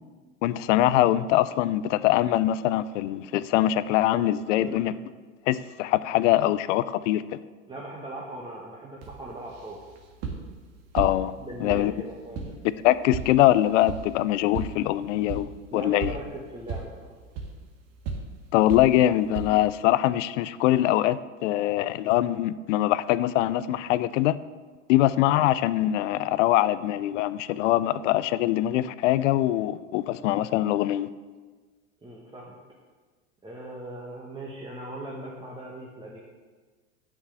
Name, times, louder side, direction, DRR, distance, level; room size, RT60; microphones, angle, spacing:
voice 1, 0.4-4.9 5.5-7.2 10.9-11.3 11.6-11.9 12.8-16.1 18.5-24.4 24.9-31.1, left 14 dB, 65° left, 16 dB, 0.6 m, -23 dB
voice 2, 4.5-5.0 7.7-9.8 11.4-12.6 15.7-16.9 32.0-32.6 33.4-36.2, right 1 dB, 15° right, -4 dB, 1.6 m, -39 dB
sound 1, 9.0-19.8, right 4 dB, 55° right, 2.0 m, -38 dB
7.3 x 6.6 x 7.6 m, 1.4 s
hypercardioid pair, 100°, 40 cm